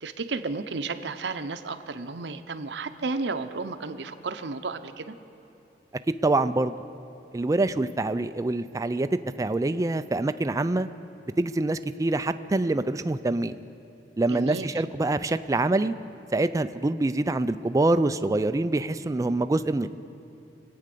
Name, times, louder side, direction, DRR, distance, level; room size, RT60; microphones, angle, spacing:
voice 1, 0.0-5.2 14.3-14.7, right 3 dB, 70° right, 9 dB, 0.7 m, -33 dB
voice 2, 6.2-6.8 7.3-9.1 9.4-10.9 11.4-13.6 14.2-15.9 16.3-20.0, right 2 dB, 20° right, 11 dB, 0.4 m, -25 dB
23.5 x 8.6 x 6.7 m, 2.8 s
head